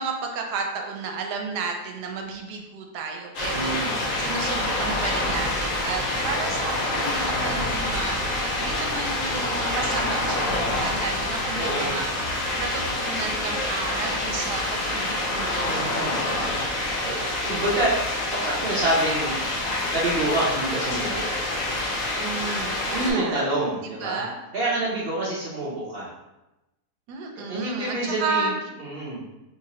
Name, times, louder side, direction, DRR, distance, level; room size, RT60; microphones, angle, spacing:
voice 1, 0.0-3.8 4.2-12.3 12.6-16.2 22.2-23.4 23.8-24.4 27.1-28.5, right 4 dB, 90° right, 2 dB, 1.2 m, -32 dB
sound 1, 3.3-23.1, left 1 dB, 60° left, 1.1 m, -27 dB
voice 2, 3.5-4.0 11.5-11.9 15.6-16.2 17.0-17.9 18.3-19.4 19.9-21.3 22.9-24.2 24.5-26.1 27.4-28.5 28.8-29.2, right 1 dB, 55° right, -6 dB, 0.7 m, -27 dB
3.4 x 2.8 x 2.9 m, 0.99 s
omnidirectional pair, 1.7 m